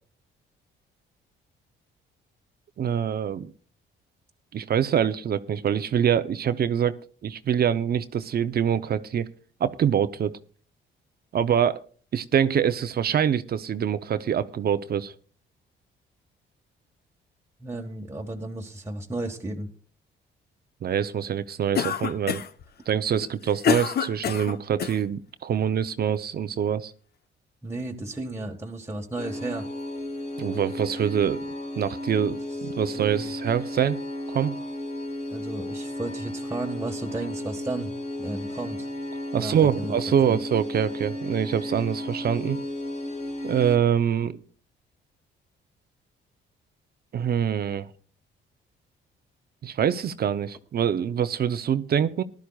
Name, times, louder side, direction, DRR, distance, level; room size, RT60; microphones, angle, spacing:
voice 1, 2.8-3.5 4.5-6.9 7.2-9.3 9.6-10.4 11.3-11.8 12.1-15.1 20.8-22.4 22.9-26.9 30.4-31.4 31.8-34.0 34.3-34.5 39.3-42.6 43.4-44.4 47.1-47.9 49.6-52.2, right 8 dB, 50° right, 0.7 m, -25 dB
voice 2, 17.6-19.7 27.6-29.7 32.2-32.6 32.9-33.3 35.3-37.9 38.2-38.9 39.4-39.9 40.3-40.4, right 2 dB, 15° right, 1.6 m, -34 dB
Cough, 21.8-22.6 23.2-25.0, left 7 dB, 55° left, 0.9 m, -26 dB
sound 1, 29.2-43.8, left 1 dB, 35° left, 1.7 m, -34 dB
19.5 x 12.0 x 2.4 m
cardioid pair, 90°, 20 cm